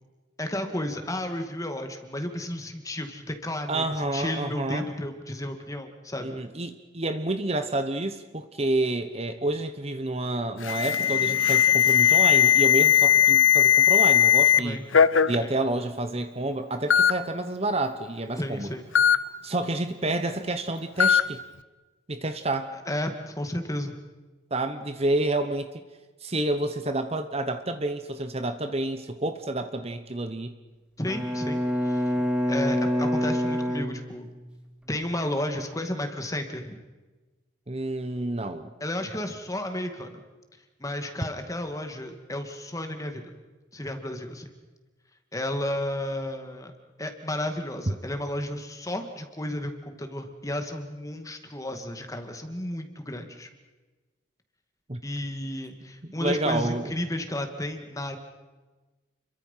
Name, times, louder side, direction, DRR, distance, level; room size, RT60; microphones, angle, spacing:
voice 1, 0.4-6.3 14.5-14.8 15.4-15.5 18.4-18.9 22.9-23.9 31.0-32.2 32.5-34.3 34.9-36.8 38.8-40.2 40.8-43.2 43.7-44.5 45.3-46.7 47.0-53.5 55.0-58.2, left 1 dB, 15° left, 6 dB, 2.3 m, -32 dB
voice 2, 3.7-4.9 6.2-14.8 15.3-18.8 19.4-21.4 22.1-22.7 24.5-25.7 26.2-30.6 37.7-38.7 54.9-55.0 56.2-56.9, right 2 dB, 30° right, 8 dB, 1.1 m, -29 dB
Alarm, 10.6-14.6 14.9-15.4 16.2-16.3 16.9-17.1 19.0-19.2 21.0-21.2, left 9 dB, 80° left, 0.9 m, -18 dB
Bowed string instrument, 31.1-34.6, equal, 5° right, 2.2 m, -27 dB
30.0 x 23.0 x 5.8 m, 1.2 s
head